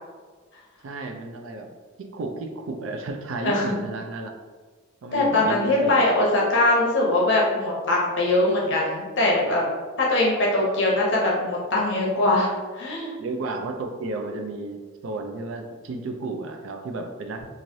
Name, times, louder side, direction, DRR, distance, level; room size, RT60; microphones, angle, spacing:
voice 1, 0.8-1.7 2.0-4.3 5.0-6.1 13.2-17.5, right 2 dB, 75° right, 4 dB, 0.4 m, -33 dB
voice 2, 3.4-3.8 5.1-9.6 10.0-13.1, left 2 dB, 60° left, -3 dB, 0.8 m, -22 dB
3.1 x 2.5 x 2.6 m, 1.4 s
head